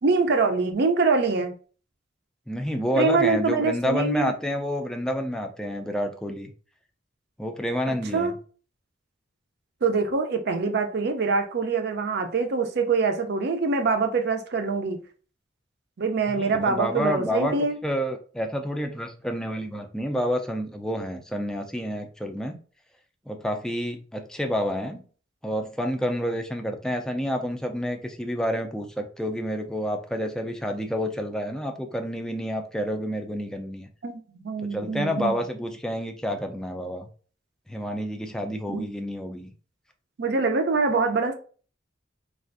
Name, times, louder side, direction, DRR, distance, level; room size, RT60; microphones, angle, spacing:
voice 1, 0.0-1.5 3.0-4.3 8.1-8.3 9.8-15.0 16.0-17.8 34.0-35.4 38.7-38.8 40.2-41.3, right 4 dB, 60° right, 0.5 m, -24 dB
voice 2, 2.5-6.5 7.4-8.3 16.4-17.5 17.8-22.6 23.3-25.0 25.4-33.9 34.7-37.1 37.7-39.5, equal, 5° left, 0.3 m, -29 dB
3.3 x 2.4 x 2.5 m
head